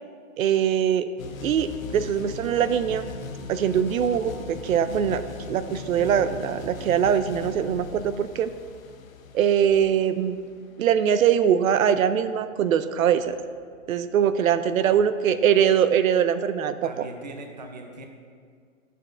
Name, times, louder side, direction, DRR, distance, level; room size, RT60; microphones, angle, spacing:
voice 1, 0.4-1.1 1.4-3.1 3.5-5.2 5.5-8.5 9.3-10.4 10.8-13.4 13.9-17.1, right 8 dB, 85° right, 12 dB, 0.5 m, -22 dB
sound 1, 1.2-14.9, left 5 dB, 80° left, 0.8 m, -40 dB
voice 2, 14.7-15.4 16.8-18.1, right 2 dB, 35° right, 3 dB, 0.5 m, -41 dB
11.0 x 6.6 x 2.5 m, 2.1 s
hypercardioid pair, 175°, 40 cm